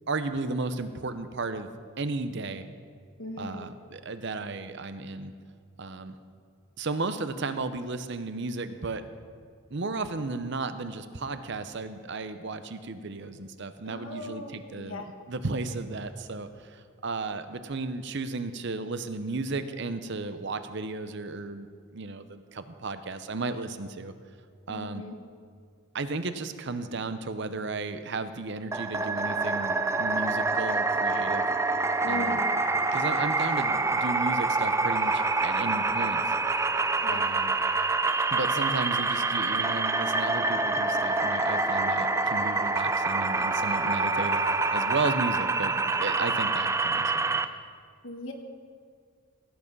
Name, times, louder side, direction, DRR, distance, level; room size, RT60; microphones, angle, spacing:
voice 1, 0.1-1.7 2.0-2.7 3.4-5.3 5.8-6.1 6.8-9.0 9.7-21.7 21.9-24.1 24.7-25.0 25.9-31.5 32.1-32.4 32.9-36.3 37.1-37.5 38.3-44.4 44.7-47.4, right 3 dB, 55° right, 10 dB, 0.7 m, -34 dB
voice 2, 3.2-3.6 13.8-15.1 24.7-25.2 32.0-32.5 37.0-37.3 48.0-48.3, left 1 dB, 65° left, 3 dB, 1.3 m, -38 dB
sound 1, 28.7-47.5, right 3 dB, 15° right, 0.3 m, -26 dB
17.5 x 8.6 x 5.4 m, 2.1 s
head